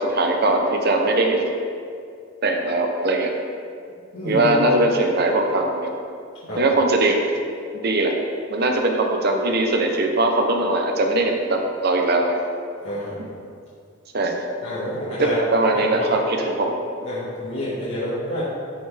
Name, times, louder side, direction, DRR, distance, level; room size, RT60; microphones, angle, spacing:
voice 1, 0.0-1.4 2.4-3.3 4.2-5.9 6.6-7.2 7.7-8.1 8.5-12.4 13.2-13.3 14.1-14.3 15.2-16.7, right 2 dB, 55° right, 3 dB, 0.9 m, -20 dB
voice 2, 4.1-4.5 6.4-6.6 12.8-13.2 14.6-15.4 15.7-16.1 17.0-18.4, left 1 dB, 85° left, -10 dB, 1.7 m, -28 dB
12.0 x 4.3 x 3.5 m, 2.3 s
head